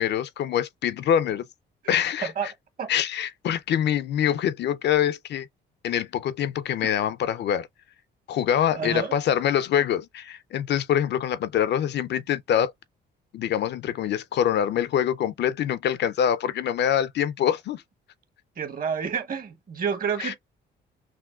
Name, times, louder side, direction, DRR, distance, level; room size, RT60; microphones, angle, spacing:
voice 1, 0.0-1.5 1.9-2.5 2.9-5.5 5.8-7.7 8.3-12.7 13.3-17.8 20.2-20.4, left 9 dB, 60° left, 0.4 m, -25 dB
voice 2, 8.7-9.1 18.6-20.4, right 6 dB, 45° right, 1.0 m, -29 dB
6.0 x 2.1 x 2.3 m
cardioid pair, 90°, 20 cm